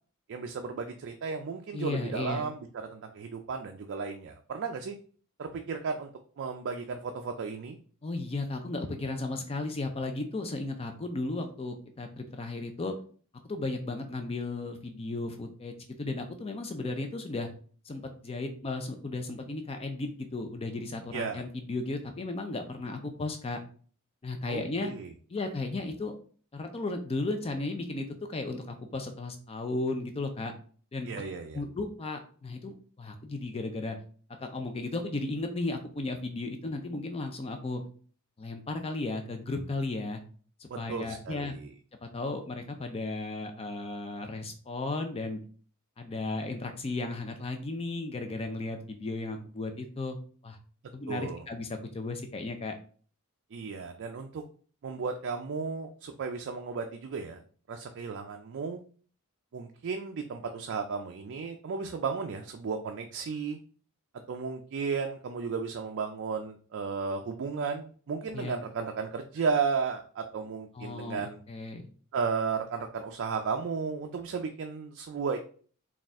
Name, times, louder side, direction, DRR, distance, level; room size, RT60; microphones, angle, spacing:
voice 1, 0.3-5.0 5.4-6.1 6.4-7.8 21.1-21.4 24.5-25.1 31.0-31.6 40.7-41.7 51.1-51.4 53.5-54.4 54.8-57.4 57.7-58.8 59.5-63.6 64.3-71.4 72.1-75.4, right 5 dB, 55° right, 5 dB, 0.4 m, -34 dB
voice 2, 1.7-2.5 8.0-12.9 13.4-17.5 17.9-23.6 24.2-24.9 25.3-26.1 26.5-30.5 30.9-31.1 31.5-34.0 34.4-37.8 38.4-40.2 40.6-41.5 42.0-45.4 46.0-50.2 50.4-50.6 50.9-52.7 68.3-68.6 70.7-71.9, left 2 dB, 25° left, 6 dB, 0.4 m, -35 dB
4.1 x 2.4 x 3.5 m, 0.43 s
head